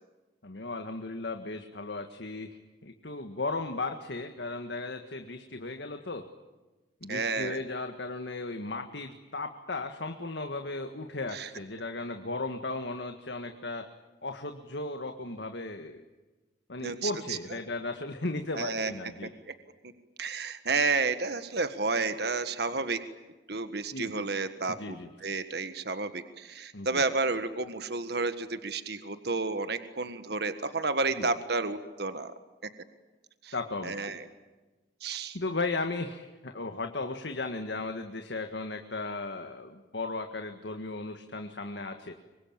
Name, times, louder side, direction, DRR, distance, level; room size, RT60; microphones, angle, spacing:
voice 1, 0.4-2.6 2.8-6.3 7.0-13.9 14.2-16.0 16.7-19.3 23.9-24.3 24.8-25.1 26.7-27.0 31.2-31.3 33.5-34.2 35.3-42.1, left 3 dB, 75° left, 6 dB, 1.8 m, -36 dB
voice 2, 7.1-7.6 11.3-11.5 16.8-17.4 18.5-18.9 20.2-23.0 23.5-32.3 33.4-33.5 33.8-34.2 35.0-35.4, right 3 dB, 65° right, 10 dB, 1.6 m, -31 dB
25.5 x 24.5 x 8.9 m, 1.2 s
head